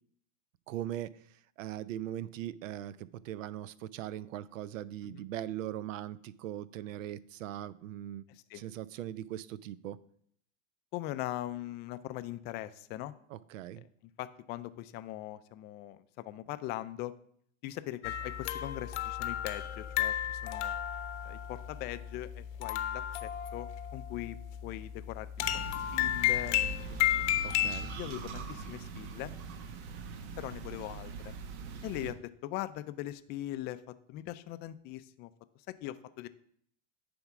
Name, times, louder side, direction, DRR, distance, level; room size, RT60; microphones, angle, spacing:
voice 1, 0.7-1.2 1.6-8.2 8.5-10.0 13.3-13.8 27.4-27.9, right 12 dB, 80° right, 0.6 m, -40 dB
voice 2, 8.3-8.6 10.9-13.1 14.2-17.1 17.6-20.8 21.3-24.4 24.6-26.6 27.9-29.3 30.4-31.3 31.8-32.2 32.4-33.8 34.1-35.3 35.7-36.3, left 15 dB, 30° left, 0.3 m, -41 dB
sound 1, 18.0-28.0, left 12 dB, 65° left, 0.8 m, -33 dB
sound 2, 25.4-32.1, right 5 dB, 65° right, 1.0 m, -43 dB
9.5 x 3.5 x 5.9 m
supercardioid pair, 125°, 38 cm